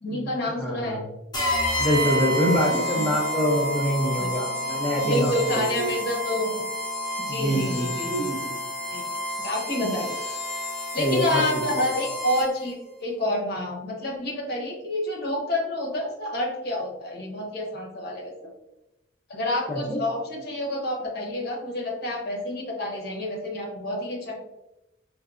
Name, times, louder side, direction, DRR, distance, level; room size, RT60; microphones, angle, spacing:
voice 1, 0.0-1.0 2.7-3.0 4.2-4.3 5.0-6.5 7.3-8.3 8.9-9.0 9.4-10.2 10.9-18.3 19.3-24.4, left 1 dB, 55° left, -1 dB, 0.9 m, -28 dB
voice 2, 0.6-1.1 1.8-5.9 7.3-8.6 11.0-11.8 19.7-20.0, equal, 5° left, -4 dB, 0.4 m, -25 dB
sound 1, 1.3-12.7, left 1 dB, 20° left, 0.9 m, -30 dB
4.5 x 2.1 x 2.3 m, 0.90 s
head